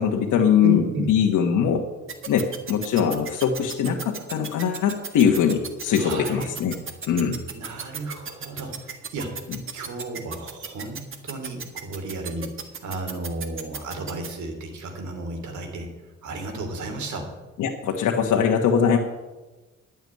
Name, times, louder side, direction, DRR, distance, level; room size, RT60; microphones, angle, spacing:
voice 1, 0.0-1.8 2.3-6.8 7.1-7.4 17.6-19.0, left 7 dB, 80° left, 1 dB, 1.3 m, -21 dB
voice 2, 0.6-1.1 6.0-6.5 7.5-9.4 9.7-12.5 12.8-17.3, right 2 dB, 70° right, 5 dB, 3.0 m, -33 dB
sound 1, 2.1-14.3, right 6 dB, 45° right, 1.7 m, -34 dB
11.0 x 7.1 x 9.4 m, 1.2 s
cardioid pair, 90°, 30 cm